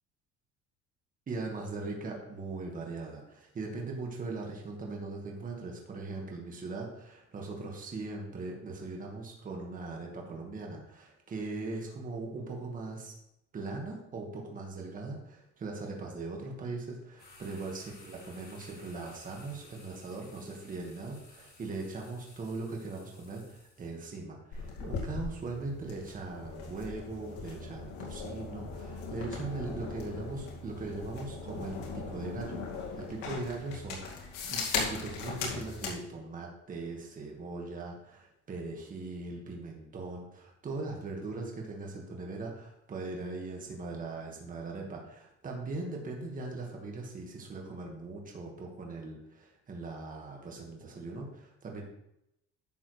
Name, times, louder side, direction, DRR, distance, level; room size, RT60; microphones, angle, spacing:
voice 1, 1.3-13.1 13.5-32.6 33.0-51.8, right 3 dB, 30° right, 0 dB, 1.8 m, -40 dB
sound 1, 17.2-24.0, left 3 dB, 30° left, 3.5 m, -56 dB
sound 2, 24.5-36.0, left 4 dB, 85° left, 2.3 m, -39 dB
11.0 x 7.1 x 3.3 m, 0.82 s
cardioid pair, 140°, 30 cm